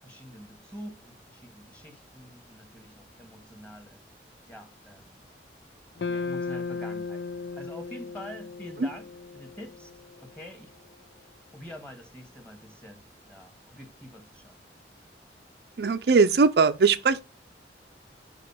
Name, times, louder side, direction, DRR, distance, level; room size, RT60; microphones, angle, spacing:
voice 1, 0.0-4.0 4.5-5.2 6.0-7.2 7.6-10.7 11.5-14.6, equal, 5° left, 1.5 m, -46 dB
sound 1, 6.0-10.3, left 4 dB, 65° left, 0.5 m, -36 dB
voice 2, 15.8-17.2, right 4 dB, 65° right, 0.5 m, -20 dB
5.2 x 5.1 x 5.6 m
head